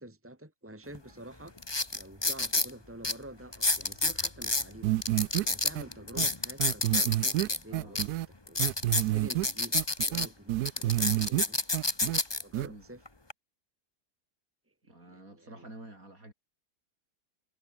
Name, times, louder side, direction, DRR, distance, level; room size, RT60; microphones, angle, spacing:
voice 1, 0.0-1.6 1.9-4.9 5.4-8.1 8.5-11.6 12.4-13.0 15.0-15.7, right 1 dB, 10° right, 2.9 m, -48 dB
sound 1, 0.9-1.0 1.6-2.7 3.0-3.1 3.5-4.7 5.0-7.6 8.0-8.1 8.5-10.3 10.7-12.4 13.1-13.3, left 2 dB, 15° left, 1.6 m, -29 dB
sound 2, 4.8-5.4 5.8-5.9 6.2-6.3 6.6-8.3 8.6-9.5 9.7-11.4 11.7-12.2 12.5-12.7, right 15 dB, 75° right, 1.1 m, -29 dB
voice 2, 9.1-9.4 12.7-12.8 14.8-16.3, right 1 dB, 60° right, 8.1 m, -49 dB
omnidirectional pair, 1.7 m